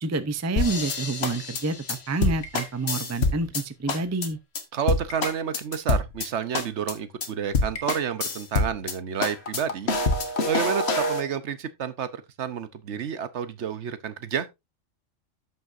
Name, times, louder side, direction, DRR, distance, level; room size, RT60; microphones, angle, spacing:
voice 1, 0.0-4.4, right 3 dB, 20° right, 0.5 m, -28 dB
sound 1, 0.6-3.6 3.9-4.3 4.5-4.6 4.9-6.3 6.5-6.9 7.2-7.3 7.5-8.9 9.2-11.2, left 2 dB, 55° left, 1.6 m, -26 dB
voice 2, 4.7-9.9 10.5-14.5, right 7 dB, 65° right, 1.1 m, -30 dB
13.5 x 5.6 x 2.6 m
omnidirectional pair, 1.3 m